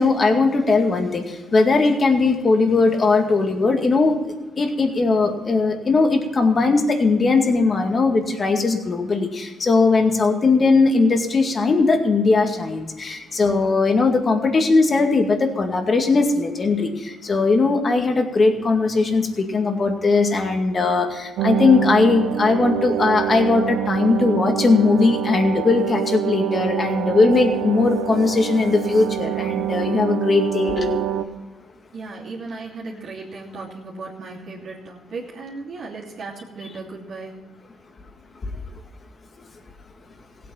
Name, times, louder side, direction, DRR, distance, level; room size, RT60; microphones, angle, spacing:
voice 1, 0.0-4.2 4.6-31.0 38.4-38.5, left 3 dB, 40° left, 4 dB, 2.1 m, -19 dB
sound 1, 21.4-31.2, right 12 dB, 80° right, 0.9 m, -26 dB
voice 2, 31.9-37.3, right 3 dB, 65° right, -5 dB, 2.8 m, -36 dB
16.0 x 8.6 x 5.7 m, 1.2 s
cardioid pair, 90°, 0 cm